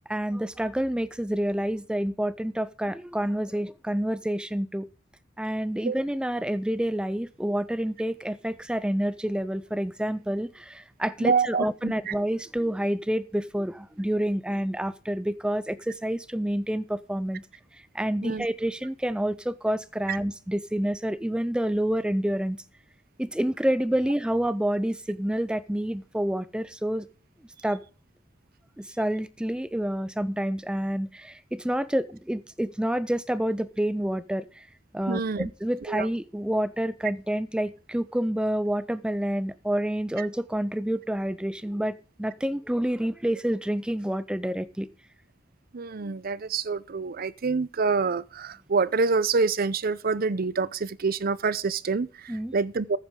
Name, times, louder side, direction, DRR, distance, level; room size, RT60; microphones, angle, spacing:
voice 1, 0.1-4.9 5.4-17.4 17.7-22.6 23.2-27.1 27.6-27.8 28.8-34.7 34.9-44.9 52.3-52.5, right 1 dB, 5° right, 0.4 m, -28 dB
voice 2, 11.2-12.1 18.2-18.5 20.1-20.2 35.1-35.5 35.9-36.1 40.2-40.3 45.7-53.0, right 4 dB, 50° right, 0.6 m, -27 dB
14.5 x 9.0 x 3.7 m
head